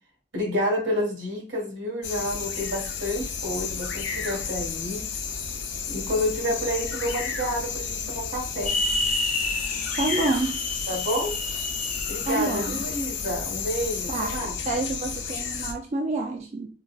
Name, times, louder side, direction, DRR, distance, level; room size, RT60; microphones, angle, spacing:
voice 1, 0.3-5.1 5.9-8.7 10.9-11.4 12.1-14.6, equal, 85° right, -1 dB, 1.6 m, -29 dB
sound 1, 2.0-15.7, left 6 dB, 85° left, 0.5 m, -32 dB
sound 2, 8.7-12.8, left 2 dB, 45° left, 0.6 m, -30 dB
voice 2, 10.0-10.6 12.3-12.8 14.1-16.7, right 2 dB, 40° right, 2 dB, 0.3 m, -28 dB
3.9 x 2.2 x 2.3 m, 0.38 s
head